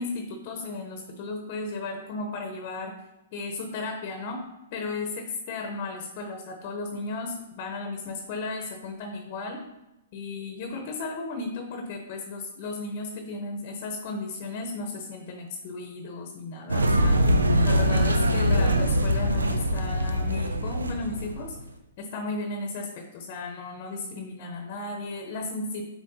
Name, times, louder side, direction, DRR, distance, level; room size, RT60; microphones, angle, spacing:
voice 1, 0.0-2.9 3.3-4.4 4.7-9.6 10.1-17.2 17.6-21.6 22.0-25.9, left 3 dB, 45° left, 4 dB, 0.9 m, -35 dB
sound 1, 16.7-21.6, equal, 85° right, 0.6 m, -23 dB
7.7 x 4.7 x 2.7 m, 0.96 s
figure-of-eight pair, 115°, 0 cm